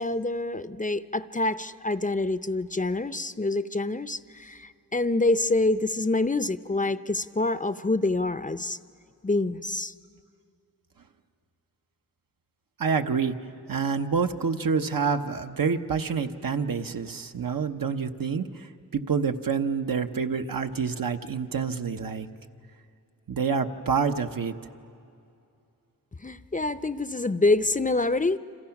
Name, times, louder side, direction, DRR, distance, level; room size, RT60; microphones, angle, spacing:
voice 1, 0.0-8.8 9.2-9.9 26.2-28.4, left 2 dB, 25° left, 12 dB, 0.6 m, -26 dB
voice 2, 12.8-13.3 13.7-18.7 18.9-22.3 23.3-24.6, right 5 dB, 70° right, 5 dB, 1.0 m, -27 dB
29.0 x 26.5 x 5.9 m, 2.6 s
wide cardioid pair, 60°, 35 cm